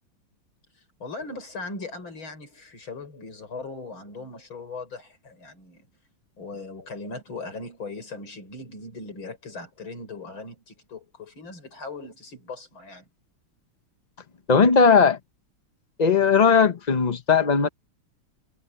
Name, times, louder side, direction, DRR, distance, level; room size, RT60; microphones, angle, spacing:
voice 1, 0.7-5.9 6.4-13.1, left 3 dB, 80° left, 6.5 m, -39 dB
voice 2, 14.5-15.2 16.0-17.7, left 5 dB, 60° left, 0.4 m, -18 dB
omnidirectional pair, 2.2 m